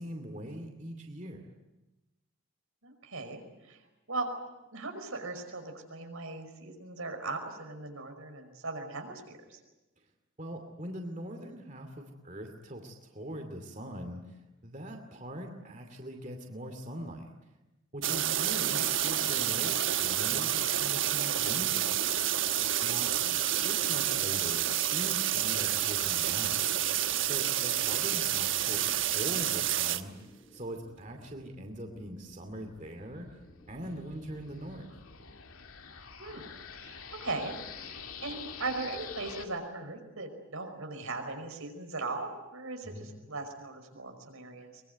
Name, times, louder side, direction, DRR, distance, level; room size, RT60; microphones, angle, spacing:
voice 1, 0.0-1.5 10.4-17.5 17.9-21.9 22.8-23.1 23.4-24.7 24.9-26.6 27.2-30.2 30.5-33.3 33.7-34.9 42.8-43.1, equal, 35° right, 4 dB, 2.5 m, -42 dB
voice 2, 2.8-3.8 4.1-4.3 4.7-9.6 18.7-18.9 23.2-23.4 36.2-37.6 37.9-44.8, right 3 dB, 85° right, 4 dB, 5.5 m, -39 dB
sound 1, 18.0-30.0, right 11 dB, 65° right, 1.2 m, -29 dB
sound 2, 25.5-34.8, equal, 20° left, 3.0 m, -57 dB
sound 3, 32.1-39.4, left 6 dB, 85° left, 2.5 m, -47 dB
23.5 x 22.0 x 9.4 m, 1.0 s
head